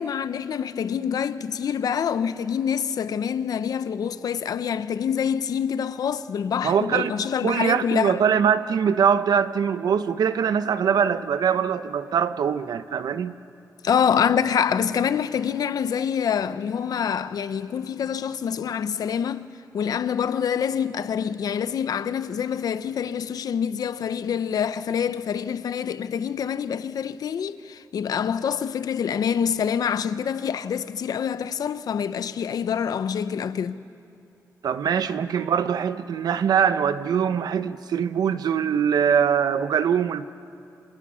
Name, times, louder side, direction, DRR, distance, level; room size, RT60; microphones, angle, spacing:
voice 1, 0.0-8.2 13.8-19.5 19.7-33.8, left 7 dB, 75° left, 0.7 m, -26 dB
voice 2, 6.6-7.2 7.4-13.3 34.6-40.3, right 7 dB, 85° right, 0.8 m, -22 dB
28.0 x 27.0 x 6.3 m
wide cardioid pair, 165°, 7 cm